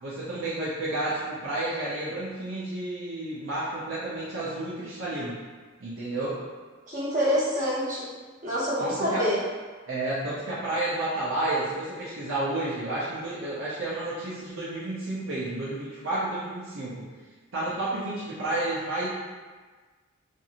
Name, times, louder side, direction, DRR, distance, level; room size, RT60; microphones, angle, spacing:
voice 1, 0.0-5.4 5.8-6.4 8.8-9.2 9.9-17.1 17.5-19.1, right 2 dB, 60° right, -9 dB, 0.5 m, -31 dB
voice 2, 6.9-8.1 8.4-9.4, equal, 35° right, -10 dB, 1.0 m, -26 dB
2.8 x 2.6 x 2.4 m, 1.4 s
head